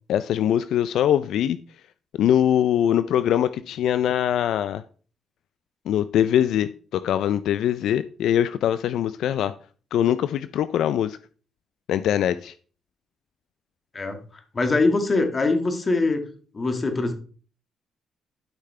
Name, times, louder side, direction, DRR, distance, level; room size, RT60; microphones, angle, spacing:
voice 1, 0.1-1.6 2.2-4.8 5.9-9.5 9.9-11.2 11.9-12.5, left 10 dB, 75° left, 13 dB, 0.4 m, -22 dB
voice 2, 13.9-16.2 16.5-17.1, left 3 dB, 30° left, 5 dB, 1.7 m, -23 dB
12.0 x 5.7 x 3.3 m, 0.41 s
cardioid pair, 90°, 0 cm